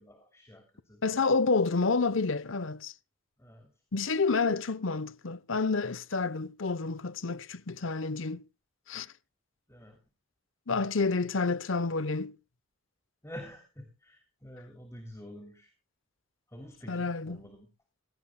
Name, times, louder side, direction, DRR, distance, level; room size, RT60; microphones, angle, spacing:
voice 1, 0.0-1.6 3.4-3.7 9.7-10.0 13.2-15.7 16.5-17.7, equal, 15° left, 2.9 m, -48 dB
voice 2, 1.0-2.9 3.9-8.4 8.9-9.1 10.7-12.3 16.9-17.4, left 4 dB, 75° left, 0.8 m, -29 dB
18.0 x 17.0 x 2.2 m
head